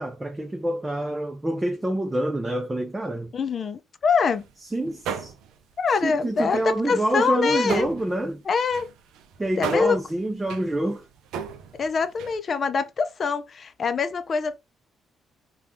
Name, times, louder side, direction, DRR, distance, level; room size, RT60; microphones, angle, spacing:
voice 1, 0.0-3.3 4.6-5.3 6.0-8.4 9.4-11.1, right 1 dB, 15° right, 0.5 m, -27 dB
voice 2, 3.3-4.4 5.8-7.9 8.5-8.9 9.6-10.0 11.8-14.6, left 5 dB, 45° left, 0.4 m, -24 dB
sound 1, 4.2-4.5 4.8-5.7 6.0-8.3 8.6-12.4, right 7 dB, 90° right, 0.4 m, -37 dB
3.3 x 2.3 x 2.6 m
cardioid pair, 90°, 0 cm